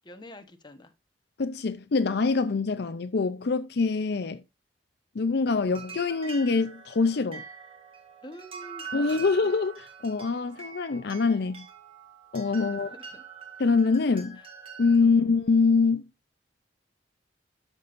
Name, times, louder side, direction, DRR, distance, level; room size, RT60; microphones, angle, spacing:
voice 1, 0.0-0.9 8.2-9.3 12.5-13.2 14.3-14.4 15.0-15.2, left 1 dB, 25° left, 1.1 m, -47 dB
voice 2, 1.4-4.4 5.1-7.4 8.9-11.7 12.3-12.9 13.6-14.4 14.8-16.1, left 4 dB, 65° left, 0.5 m, -24 dB
sound 1, 5.7-15.0, right 6 dB, 30° right, 1.9 m, -44 dB
13.0 x 6.1 x 2.5 m
head